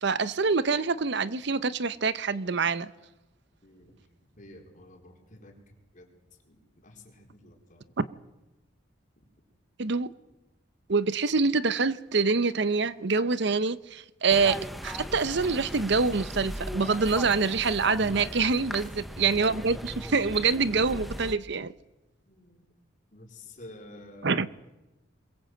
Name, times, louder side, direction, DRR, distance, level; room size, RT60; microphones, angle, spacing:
voice 1, 0.0-2.9 8.0-8.1 9.8-10.1 10.9-18.9 19.2-21.7 24.2-24.5, right 4 dB, 65° right, 0.8 m, -25 dB
voice 2, 3.6-4.0 4.4-5.6 5.9-6.1 6.4-7.9 18.6-18.9 22.3-22.7 23.1-24.4, left 1 dB, 45° left, 4.4 m, -50 dB
sound 1, 14.3-21.3, equal, ahead, 1.0 m, -38 dB
22.5 x 22.5 x 7.9 m
head